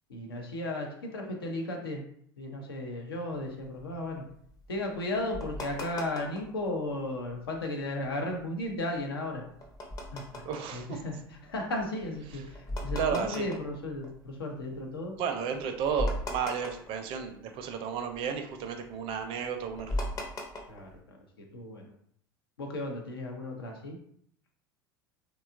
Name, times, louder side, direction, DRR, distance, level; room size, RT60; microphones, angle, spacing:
voice 1, 0.1-2.0 2.4-4.2 4.7-9.4 10.1-10.4 10.7-11.1 11.4-15.1 20.7-21.2 21.5-21.8 22.6-24.0, left 1 dB, 80° left, 2 dB, 0.6 m, -35 dB
sound 1, 3.4-6.6 7.0-7.6 8.1-14.7 15.2-15.3 15.5-17.7 17.9-21.0, left 1 dB, 30° left, 0.6 m, -38 dB
voice 2, 10.4-11.0 12.3-12.4 13.0-13.5 15.2-20.0, right 7 dB, 50° right, 6 dB, 0.4 m, -33 dB
2.8 x 2.3 x 2.4 m, 0.65 s
figure-of-eight pair, 75°, 12 cm